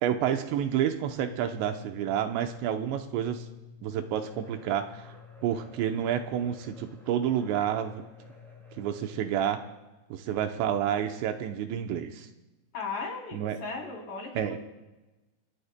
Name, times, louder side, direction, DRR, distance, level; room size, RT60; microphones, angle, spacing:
voice 1, 0.0-3.5 3.8-5.1 5.4-8.1 8.8-9.6 10.1-12.3 13.3-13.6 14.4-14.6, right 9 dB, 80° right, 6 dB, 2.9 m, -29 dB
sound 1, 1.0-9.3, left 8 dB, 65° left, 4.3 m, -51 dB
sound 2, 4.1-9.5, equal, ahead, 6.7 m, -55 dB
voice 2, 12.7-14.3, left 4 dB, 45° left, -1 dB, 4.6 m, -36 dB
28.5 x 18.5 x 2.2 m, 1.1 s
omnidirectional pair, 5.2 m